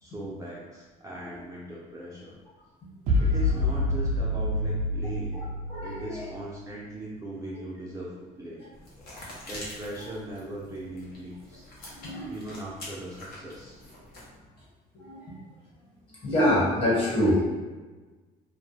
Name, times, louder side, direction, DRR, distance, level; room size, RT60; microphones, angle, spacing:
voice 1, 0.0-2.4 3.2-5.4 5.8-8.6 9.5-11.6 12.3-13.8, right 1 dB, 20° right, -6 dB, 0.4 m, -39 dB
sound 1, 3.1-6.5, left 1 dB, 80° right, 0.5 m, -27 dB
voice 2, 5.7-6.3 11.9-12.3 14.9-15.3 16.2-17.4, left 1 dB, 35° left, -7 dB, 1.2 m, -25 dB
sound 2, 8.7-14.4, left 1 dB, 65° left, 0.8 m, -45 dB
2.1 x 2.1 x 3.2 m, 1.3 s
cardioid pair, 110°, 17 cm